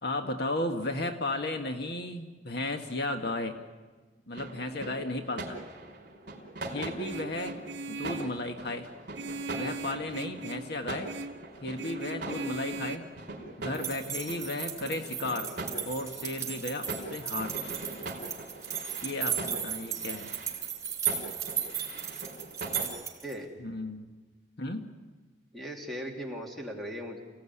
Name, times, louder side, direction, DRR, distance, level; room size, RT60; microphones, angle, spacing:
voice 1, 0.0-3.6 4.3-5.6 6.7-7.6 7.9-8.9 9.5-11.1 11.6-13.1 13.6-15.5 15.8-17.6 19.0-20.3 23.6-24.1 24.6-24.9, left 2 dB, 60° left, 5 dB, 1.6 m, -34 dB
sound 1, 4.3-22.9, right 2 dB, 50° right, 4.8 m, -42 dB
Vehicle horn car horn honking, 7.0-8.4 9.1-10.7 11.0-11.4 11.8-13.0, right 3 dB, 65° right, 2.1 m, -39 dB
sound 2, 13.7-23.3, right 8 dB, 20° right, 4.3 m, -35 dB
voice 2, 23.2-23.5 25.5-27.2, equal, ahead, 0 dB, 3.1 m, -38 dB
29.0 x 17.5 x 9.9 m, 1.3 s
head